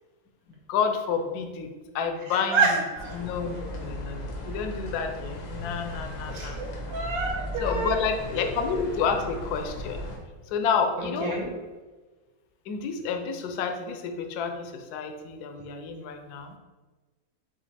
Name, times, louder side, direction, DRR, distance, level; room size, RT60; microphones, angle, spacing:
voice 1, 0.7-2.8 3.1-6.6 7.6-10.0 10.5-11.4 12.7-16.5, left 6 dB, 70° left, 6 dB, 1.0 m, -30 dB
voice 2, 2.3-3.2 6.3-8.0 11.0-11.5, right 4 dB, 80° right, -1 dB, 1.7 m, -28 dB
sound 1, 2.9-10.2, left 1 dB, 90° left, 1.6 m, -36 dB
5.1 x 2.5 x 4.2 m, 1.3 s
omnidirectional pair, 2.0 m